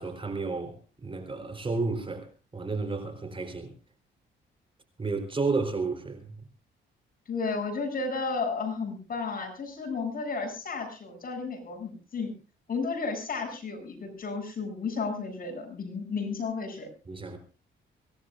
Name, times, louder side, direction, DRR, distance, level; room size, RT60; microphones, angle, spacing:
voice 1, 0.0-3.7 5.0-6.3 17.1-17.4, right 3 dB, 25° right, 4.0 m, -32 dB
voice 2, 7.3-12.3 12.7-16.9, left 4 dB, 45° left, 7.5 m, -33 dB
24.5 x 18.0 x 2.5 m
cardioid pair, 90°, 20 cm